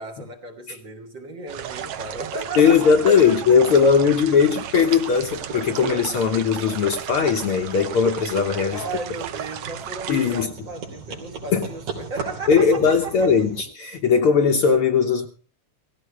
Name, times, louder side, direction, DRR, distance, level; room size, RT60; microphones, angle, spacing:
voice 1, 0.0-3.3 8.7-13.3, right 3 dB, 50° right, 1.8 m, -35 dB
sound 1, 1.5-10.5, right 10 dB, 65° right, 1.6 m, -34 dB
sound 2, 1.5-13.6, right 5 dB, 85° right, 4.4 m, -39 dB
voice 2, 2.6-8.8 10.1-10.5 11.5-11.7 12.5-15.3, left 6 dB, 60° left, 1.6 m, -19 dB
17.5 x 16.0 x 3.3 m
omnidirectional pair, 3.3 m